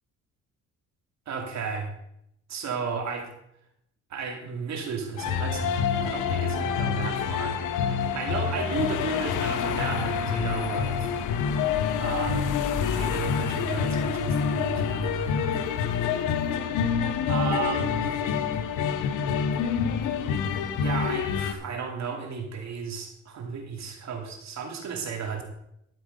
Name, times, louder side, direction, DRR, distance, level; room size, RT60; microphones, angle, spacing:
voice 1, 1.3-1.9 2.5-3.3 4.1-7.6 8.1-11.1 12.0-12.5 12.9-15.7 17.3-18.1 20.8-25.4, right 5 dB, 65° right, 3 dB, 2.5 m, -33 dB
sound 1, 5.2-21.5, left 7 dB, 85° left, 0.9 m, -27 dB
12.0 x 7.7 x 5.2 m, 0.78 s
cardioid pair, 90°, 30 cm